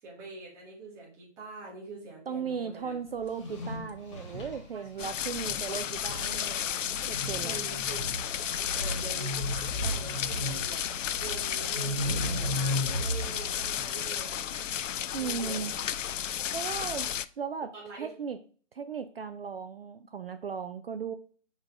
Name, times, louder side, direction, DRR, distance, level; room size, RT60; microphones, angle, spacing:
voice 1, 0.0-2.9 5.0-5.1 7.4-8.0 8.4-10.9 11.2-14.6 15.2-15.9 17.7-18.1, right 3 dB, 5° right, -4 dB, 0.9 m, -44 dB
voice 2, 2.3-6.6 7.1-7.6 15.1-15.7 16.5-17.1 17.4-17.7 18.0-18.4 18.7-21.1, right 6 dB, 50° right, 9 dB, 0.5 m, -36 dB
sound 1, 3.1-11.4, left 2 dB, 55° left, 1.6 m, -49 dB
sound 2, 3.2-5.6 5.9-13.8, equal, 25° left, 1.3 m, -35 dB
sound 3, 5.0-17.3, left 9 dB, 80° left, 0.5 m, -33 dB
5.1 x 3.8 x 5.0 m, 0.42 s
hypercardioid pair, 160°, 37 cm